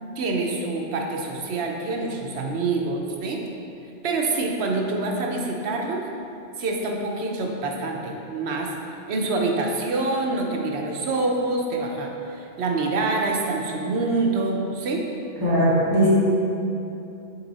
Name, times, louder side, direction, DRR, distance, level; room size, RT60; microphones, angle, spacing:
voice 1, 0.0-3.4 4.0-6.1 6.6-8.7 9.1-15.0, right 3 dB, 70° right, 1 dB, 1.0 m, -26 dB
voice 2, 15.4-16.1, right 1 dB, 20° right, -9 dB, 1.3 m, -19 dB
6.9 x 3.7 x 4.0 m, 2.7 s
omnidirectional pair, 1.1 m